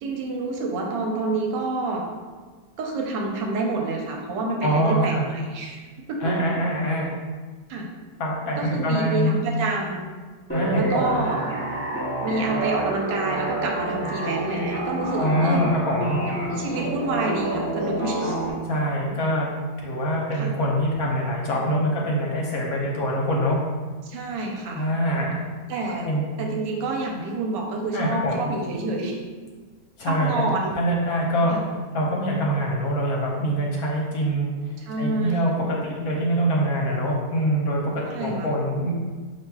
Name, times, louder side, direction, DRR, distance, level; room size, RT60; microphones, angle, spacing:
voice 1, 0.0-2.0 2.8-5.8 6.1-6.2 7.7-7.9 8.6-10.1 10.7-11.4 12.2-15.6 16.6-18.4 20.4-20.5 24.0-24.9 25.7-26.1 26.4-29.2 30.0-30.7 31.5-31.6 34.9-35.5 38.0-38.5, right 3 dB, 85° right, 1 dB, 1.3 m, -28 dB
voice 2, 4.6-5.2 6.2-7.1 8.2-9.3 10.5-11.2 15.2-16.2 18.6-19.5 19.8-23.6 24.7-25.3 26.0-26.2 27.9-28.5 30.0-30.4 30.7-31.5 31.9-34.5 35.0-38.9, equal, 65° left, -2 dB, 1.1 m, -24 dB
sound 1, 10.5-18.5, right 1 dB, 15° left, 0.4 m, -28 dB
5.7 x 2.9 x 2.3 m, 1.4 s
omnidirectional pair, 1.8 m